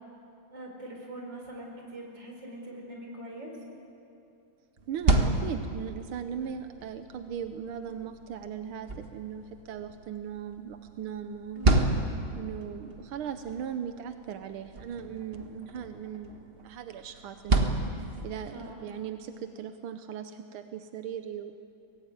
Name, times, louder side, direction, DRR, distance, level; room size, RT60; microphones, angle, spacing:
voice 1, 0.5-3.5 11.5-12.1 18.5-18.8, right 1 dB, 60° right, 0 dB, 5.0 m, -43 dB
sound 1, 4.8-18.7, right 2 dB, 30° right, 1.5 m, -32 dB
voice 2, 4.9-11.6 12.4-21.5, right 8 dB, 85° right, 8 dB, 1.7 m, -38 dB
23.0 x 18.5 x 9.2 m, 2.7 s
omnidirectional pair, 2.3 m